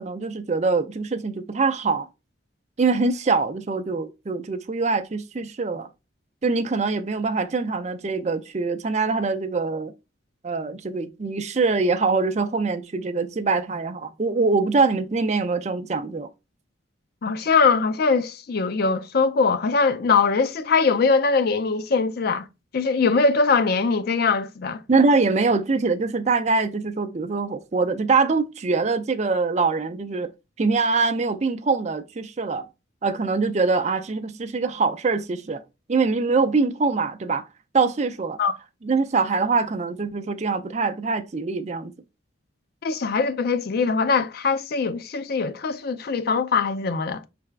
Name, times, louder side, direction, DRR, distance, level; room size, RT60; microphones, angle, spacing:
voice 1, 0.0-2.1 2.8-5.9 6.4-9.9 10.4-16.3 24.9-30.3 30.6-32.7 33.0-35.6 35.9-37.5 37.7-38.4 38.8-41.9, right 4 dB, 35° right, 0.4 m, -23 dB
voice 2, 17.2-22.5 22.7-24.8 38.4-38.6 42.8-47.2, left 4 dB, 50° left, 0.4 m, -22 dB
4.7 x 3.4 x 3.3 m
head